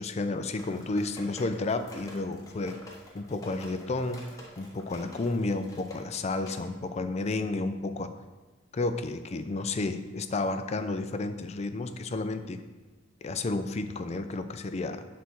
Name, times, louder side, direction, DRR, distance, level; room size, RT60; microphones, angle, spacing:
voice 1, 0.0-2.8 3.1-8.1 8.7-12.6 13.2-15.0, left 2 dB, 35° left, 9 dB, 0.4 m, -31 dB
sound 1, 0.6-6.7, left 1 dB, 20° left, 1.1 m, -49 dB
6.5 x 4.1 x 5.9 m, 1.3 s
head